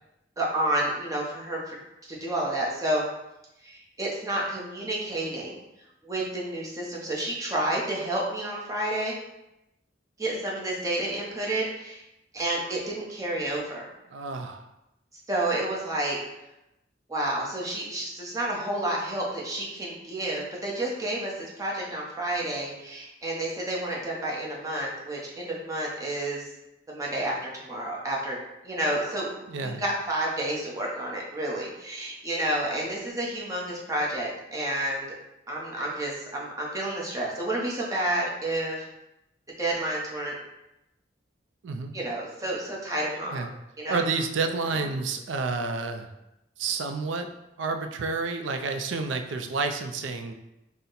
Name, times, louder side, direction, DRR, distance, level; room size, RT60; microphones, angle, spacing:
voice 1, 0.4-1.8 2.1-3.0 3.6-5.6 6.0-9.1 10.2-12.0 12.3-13.9 15.3-16.2 17.1-26.5 26.9-28.4 28.6-35.1 35.5-38.9 39.6-40.4 41.9-43.4 43.8-44.1, right 1 dB, 20° right, -4 dB, 0.8 m, -30 dB
voice 2, 14.1-14.7 29.5-29.8 41.6-41.9 43.3-43.5 43.9-46.1 46.6-47.3 47.6-50.3, right 4 dB, 85° right, 6 dB, 0.4 m, -30 dB
4.1 x 2.1 x 3.8 m, 0.89 s
head